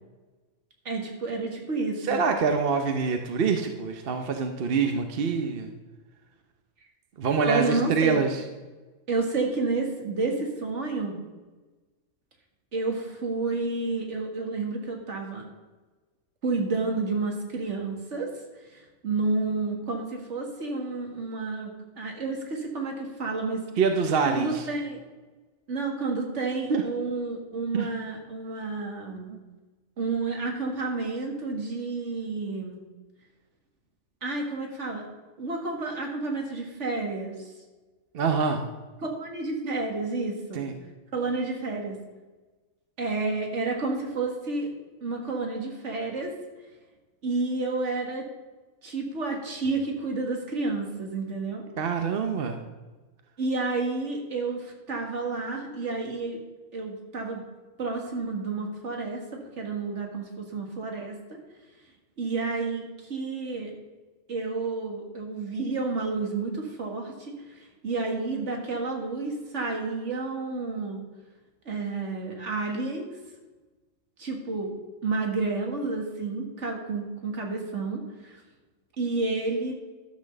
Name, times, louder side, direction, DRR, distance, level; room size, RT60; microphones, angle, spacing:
voice 1, 0.9-2.2 7.5-8.2 9.1-11.2 12.7-15.5 16.4-18.4 18.7-23.6 24.2-25.0 25.7-29.3 30.0-32.8 34.2-35.1 35.4-37.5 39.2-40.7 41.1-42.0 43.0-44.7 45.0-46.3 47.2-48.3 48.8-51.6 53.4-56.4 56.7-57.4 57.8-61.4 62.2-63.7 64.3-71.1 71.7-73.1 74.2-74.8 75.0-78.4 79.0-79.7, right 3 dB, 70° right, 2 dB, 2.1 m, -30 dB
voice 2, 2.0-5.7 7.2-8.4 23.8-24.7 26.7-26.8 27.7-27.9 29.3-29.4 38.1-38.6 40.5-40.8 51.8-52.6, right 5 dB, 55° right, 6 dB, 0.9 m, -25 dB
12.0 x 6.1 x 6.5 m, 1.2 s
omnidirectional pair, 1.3 m